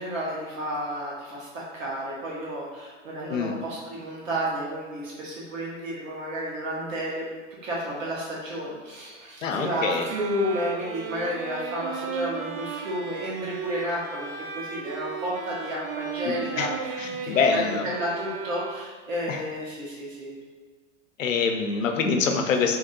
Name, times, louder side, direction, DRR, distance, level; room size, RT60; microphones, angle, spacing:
voice 1, 0.0-7.3 7.6-20.3, equal, 85° right, -4 dB, 1.2 m, -32 dB
voice 2, 9.4-10.1 16.2-16.7 17.0-17.9 19.3-19.4 21.2-22.8, left 5 dB, 85° left, 4 dB, 0.6 m, -25 dB
sound 1, 9.7-19.1, right 6 dB, 50° right, 0.5 m, -36 dB
3.0 x 2.8 x 3.7 m, 1.5 s
hypercardioid pair, 110°, 38 cm